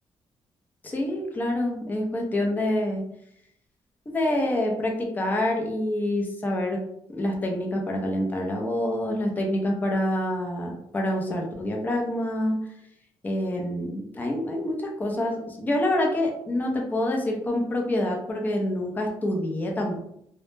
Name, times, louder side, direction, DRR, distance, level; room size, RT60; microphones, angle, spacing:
voice 1, 0.8-3.0 4.1-6.8 7.1-12.6 13.2-20.0, left 1 dB, 15° left, 1 dB, 0.4 m, -27 dB
2.0 x 2.0 x 3.1 m, 0.74 s
cardioid pair, 150°, 10 cm